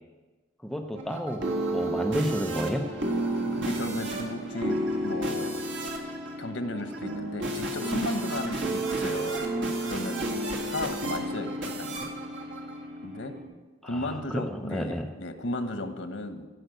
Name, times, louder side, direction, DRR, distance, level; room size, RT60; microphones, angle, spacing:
voice 1, 0.6-1.5 1.7-2.9 13.8-15.1, equal, ahead, 4 dB, 0.6 m, -31 dB
sound 1, 0.9-13.4, right 1 dB, 80° right, 1.9 m, -31 dB
voice 2, 3.5-5.6 6.4-10.4 10.7-12.1 13.0-13.3 13.8-16.5, left 2 dB, 85° left, 8 dB, 1.1 m, -35 dB
15.5 x 5.6 x 7.8 m, 1.3 s
head